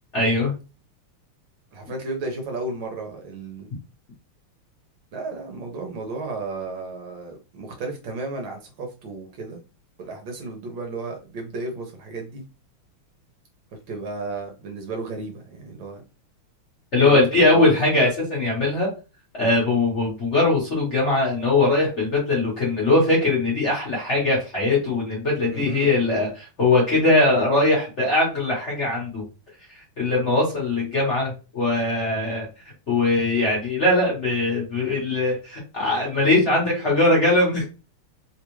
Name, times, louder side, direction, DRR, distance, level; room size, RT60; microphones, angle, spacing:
voice 1, 0.1-0.5 16.9-18.9 19.4-29.2 30.0-32.5 32.9-37.7, left 2 dB, 40° left, -5 dB, 1.2 m, -21 dB
voice 2, 1.7-3.7 5.1-9.6 10.0-12.4 13.9-16.0 17.0-17.8 25.5-25.9, right 3 dB, 70° right, 2 dB, 1.4 m, -33 dB
3.5 x 2.4 x 3.0 m, 0.32 s
omnidirectional pair, 2.4 m